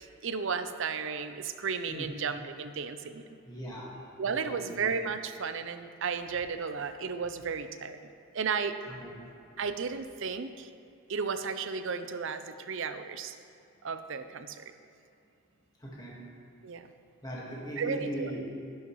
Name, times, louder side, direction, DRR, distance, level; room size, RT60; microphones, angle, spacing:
voice 1, 0.2-3.2 4.2-8.0 8.3-8.8 9.6-10.7 11.1-13.3 13.8-14.6 16.6-16.9 17.8-18.3, right 5 dB, 60° right, 10 dB, 0.5 m, -34 dB
voice 2, 3.4-3.9 4.4-4.8 8.9-9.1 15.8-16.2 17.2-18.4, right 1 dB, 20° left, -5 dB, 1.6 m, -39 dB
12.0 x 11.5 x 3.1 m, 2.6 s
head